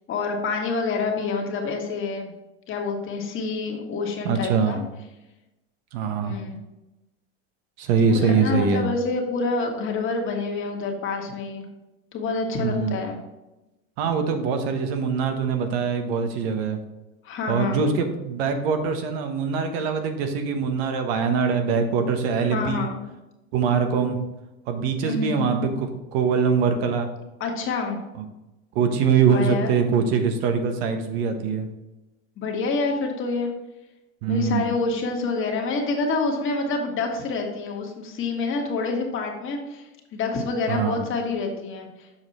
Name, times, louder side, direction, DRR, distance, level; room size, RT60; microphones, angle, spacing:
voice 1, 0.1-2.3 2.7-4.8 6.2-6.6 8.1-11.6 12.1-13.2 17.2-17.9 22.5-23.0 25.0-25.5 27.4-28.0 29.2-29.7 32.4-33.5 34.3-42.1, left 4 dB, 40° left, 2 dB, 1.6 m, -27 dB
voice 2, 4.2-4.8 5.9-6.4 7.8-8.8 12.6-13.0 14.0-16.8 17.5-22.9 23.5-24.2 24.7-27.1 28.2-28.3 28.7-31.7 34.2-34.7 40.7-41.0, right 6 dB, 70° right, 6 dB, 1.2 m, -23 dB
7.1 x 5.1 x 4.2 m, 0.99 s
supercardioid pair, 120°, 32 cm